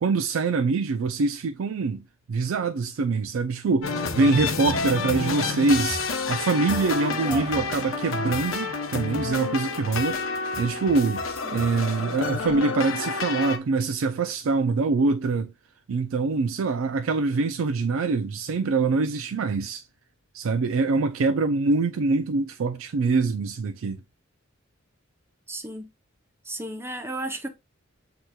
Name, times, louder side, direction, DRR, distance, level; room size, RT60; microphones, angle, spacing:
voice 1, 0.0-10.2 10.6-11.2 11.5-15.5 15.9-19.8 20.3-24.0, right 3 dB, 70° right, 0.4 m, -24 dB
sound 1, 3.8-13.6, left 4 dB, 75° left, 0.7 m, -29 dB
voice 2, 7.1-7.7 11.4-11.7 25.5-25.9 26.4-27.5, right 2 dB, 10° right, 0.6 m, -34 dB
7.8 x 2.9 x 2.3 m
head